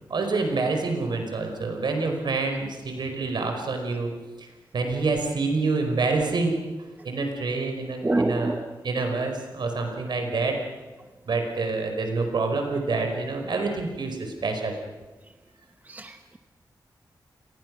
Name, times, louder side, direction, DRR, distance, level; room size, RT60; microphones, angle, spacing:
voice 1, 0.1-4.1 4.4-6.6 7.0-8.6 8.8-10.5 11.3-14.8, right 3 dB, 70° right, 4 dB, 4.7 m, -27 dB
voice 2, 8.0-8.6 15.9-16.4, right 2 dB, 20° right, 7 dB, 1.1 m, -26 dB
29.5 x 21.0 x 6.3 m, 1.3 s
wide cardioid pair, 125°, 8 cm